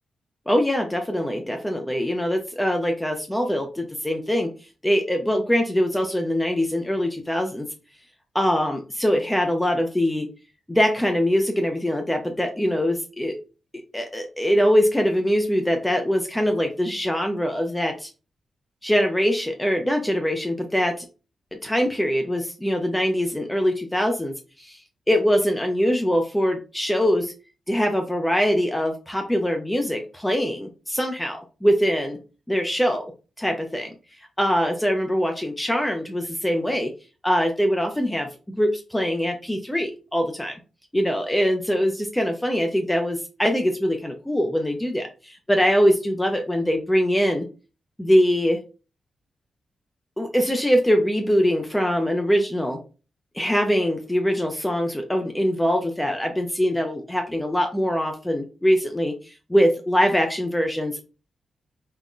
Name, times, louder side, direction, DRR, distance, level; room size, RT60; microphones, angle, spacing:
voice 1, 0.5-4.5 4.8-7.7 8.3-10.3 10.7-13.4 13.9-18.1 18.8-21.0 21.6-24.3 24.6-24.8 25.1-27.3 27.7-32.2 32.5-33.0 33.4-33.9 34.4-36.9 37.2-40.5 40.9-47.5 48.0-48.6 50.2-52.8 53.4-61.0, equal, 5° left, 4 dB, 0.3 m, -23 dB
3.6 x 2.0 x 2.3 m, 0.34 s
wide cardioid pair, 160°, 0 cm